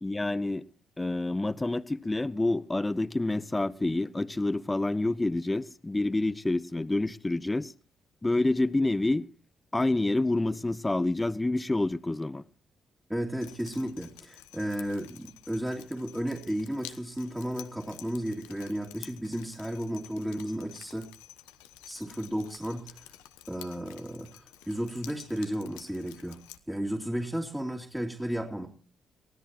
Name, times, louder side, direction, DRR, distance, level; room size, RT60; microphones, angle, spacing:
voice 1, 0.0-0.6 1.0-7.7 8.2-9.3 9.7-12.4, left 2 dB, 20° left, 1.0 m, -28 dB
voice 2, 13.1-21.1 21.9-23.1 23.5-26.4 26.7-28.7, equal, 5° right, 2.9 m, -33 dB
Drip, 13.4-26.6, left 14 dB, 80° left, 1.0 m, -51 dB
23.0 x 16.5 x 2.9 m
hypercardioid pair, 40°, 0 cm